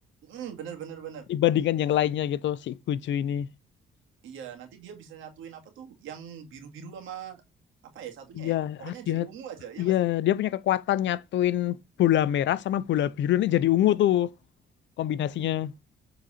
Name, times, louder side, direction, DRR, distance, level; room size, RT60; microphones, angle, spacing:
voice 1, 0.2-1.3 4.2-7.4 7.9-10.0, right 8 dB, 85° right, 2.0 m, -41 dB
voice 2, 1.3-3.5 8.4-9.3 9.8-14.3 15.0-15.7, left 12 dB, 65° left, 0.6 m, -25 dB
7.6 x 4.0 x 4.1 m
cardioid pair, 90°, 20 cm